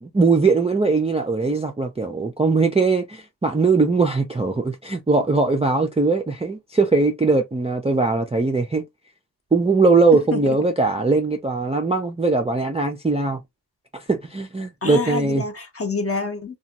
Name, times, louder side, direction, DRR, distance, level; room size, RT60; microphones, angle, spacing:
voice 1, 0.0-8.8 9.5-13.4 13.9-15.4, right 3 dB, 15° right, 0.3 m, -20 dB
voice 2, 10.1-10.6 14.8-16.6, left 4 dB, 35° left, 0.7 m, -27 dB
2.5 x 2.3 x 2.8 m
wide cardioid pair, 100°, 43 cm